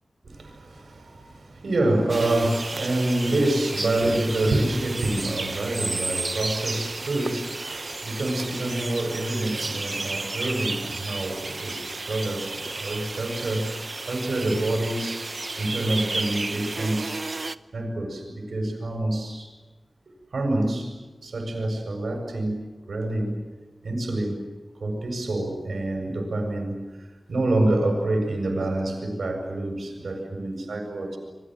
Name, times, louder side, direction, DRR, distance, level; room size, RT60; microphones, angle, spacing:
voice 1, 0.2-13.7 14.0-17.2 17.7-19.5 20.3-20.9 21.2-23.4 23.8-24.4 24.8-31.2, right 1 dB, 80° right, 4 dB, 7.6 m, -27 dB
sound 1, 2.1-17.6, right 3 dB, 45° right, 0.9 m, -32 dB
28.5 x 24.0 x 8.0 m, 1.2 s
wide cardioid pair, 80°, 0 cm